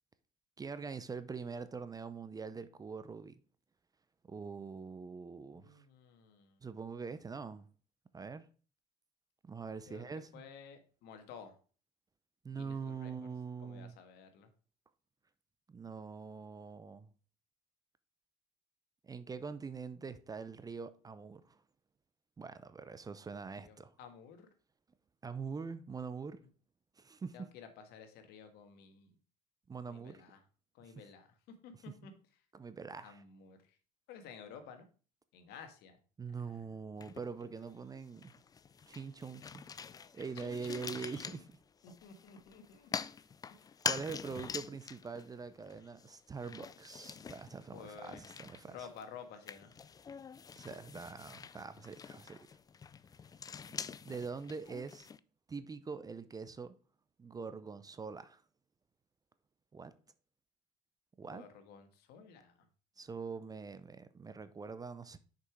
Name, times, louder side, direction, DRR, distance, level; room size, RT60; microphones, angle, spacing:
voice 1, 0.6-3.4 4.2-5.8 6.6-7.7 8.1-8.5 9.4-10.5 12.4-14.0 15.7-17.1 19.0-21.6 22.4-23.9 25.2-26.4 27.0-27.5 29.7-30.2 30.8-31.0 31.9-32.0 32.5-33.2 36.2-38.3 38.9-39.7 40.1-41.5 43.8-48.9 50.6-52.4 53.7-53.8 54.0-55.1 55.5-56.7 57.2-58.4 59.7-59.9 61.2-61.4 63.0-65.2, right 5 dB, 20° right, 0.6 m, -44 dB
voice 2, 5.5-6.6 9.9-10.0 10.3-11.5 12.5-13.1 13.6-14.5 23.6-24.5 27.3-29.1 29.8-30.4 30.7-31.4 31.6-32.1 33.0-33.8 34.1-34.8 35.3-36.0 36.3-36.7 40.3-41.4 41.8-42.9 43.5-43.8 47.7-48.2 48.7-49.7 61.2-62.5, left 6 dB, 65° left, 1.5 m, -53 dB
sound 1, 37.0-37.7 38.0-55.2, left 6 dB, 20° left, 0.4 m, -45 dB
6.4 x 5.5 x 4.6 m
supercardioid pair, 90°, 18 cm